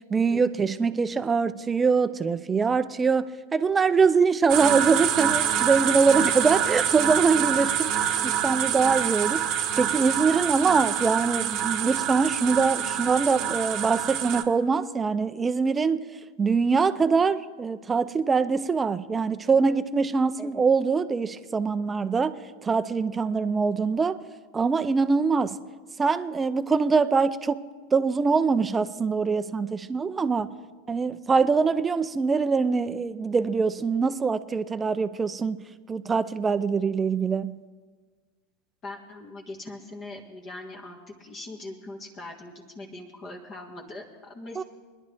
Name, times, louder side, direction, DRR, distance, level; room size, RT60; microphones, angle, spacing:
voice 1, 0.0-16.1 16.4-22.4 22.6-24.2 24.5-25.6 26.0-30.5 30.9-35.6 35.9-37.6 44.6-44.7, right 5 dB, 20° right, 0.5 m, -23 dB
sound 1, 4.5-14.4, right 9 dB, 50° right, 0.9 m, -26 dB
voice 2, 38.8-44.6, left 2 dB, 35° left, 1.6 m, -41 dB
21.5 x 10.5 x 3.5 m
hypercardioid pair, 100°, 0 cm